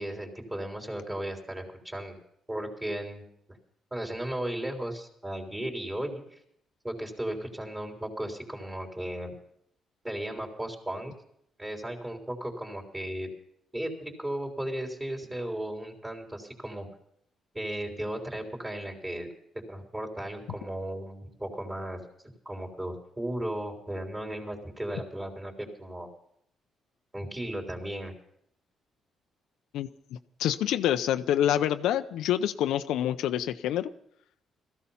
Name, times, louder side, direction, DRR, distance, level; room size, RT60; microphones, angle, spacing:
voice 1, 0.0-2.2 2.5-3.2 3.9-6.4 6.8-9.3 10.0-11.1 11.6-13.3 13.7-16.9 17.5-19.3 19.7-22.0 22.5-26.1 27.1-28.1, right 1 dB, 15° right, 2 dB, 3.8 m, -35 dB
voice 2, 29.7-33.9, left 11 dB, 85° left, 8 dB, 0.6 m, -27 dB
17.0 x 14.5 x 5.7 m, 0.72 s
cardioid pair, 90°, 0 cm